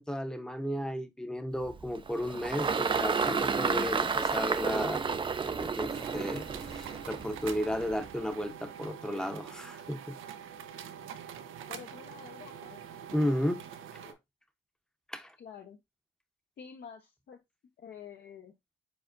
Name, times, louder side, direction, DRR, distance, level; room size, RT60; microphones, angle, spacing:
voice 1, 0.0-5.0 5.4-10.2 13.1-13.6 14.0-14.2 15.1-15.3, equal, 5° left, 0.8 m, -34 dB
Engine, 1.6-8.2, right 5 dB, 25° right, 0.5 m, -31 dB
sound 1, 5.9-14.1, right 8 dB, 85° right, 0.7 m, -45 dB
voice 2, 11.7-12.8 15.4-15.8 16.6-17.4 17.8-18.5, left 7 dB, 55° left, 0.8 m, -48 dB
4.9 x 4.2 x 2.5 m
cardioid pair, 90°, 20 cm